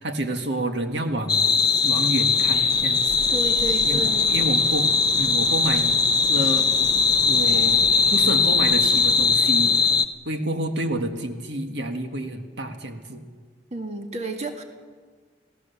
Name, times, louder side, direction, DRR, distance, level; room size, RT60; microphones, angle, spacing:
voice 1, 0.0-1.5 1.8-3.3 3.8-6.0 6.3-6.7 7.3-7.8 8.1-9.7 10.2-13.2, right 1 dB, 80° right, 5 dB, 1.8 m, -29 dB
sound 1, 1.3-10.0, left 5 dB, 25° left, 0.7 m, -20 dB
sound 2, 2.4-9.3, equal, 60° right, 4.7 m, -41 dB
voice 2, 3.3-4.5 13.7-14.6, right 2 dB, 40° right, 4 dB, 1.9 m, -31 dB
27.0 x 16.5 x 7.0 m, 1.5 s
head